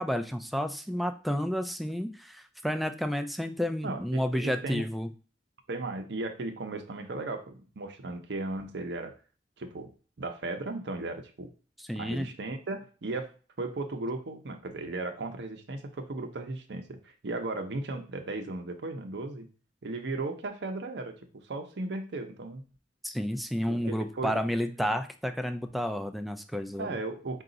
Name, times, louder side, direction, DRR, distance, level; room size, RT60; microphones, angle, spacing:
voice 1, 0.0-5.1 11.8-12.3 23.0-27.0, equal, ahead, 7 dB, 0.3 m, -31 dB
voice 2, 3.8-4.9 5.7-9.1 9.6-9.9 10.2-11.5 12.0-13.3 13.6-19.5 19.8-21.2 21.5-22.6 23.7-24.4 26.8-27.4, right 2 dB, 65° right, 6 dB, 0.7 m, -36 dB
5.0 x 2.4 x 3.8 m, 0.37 s
head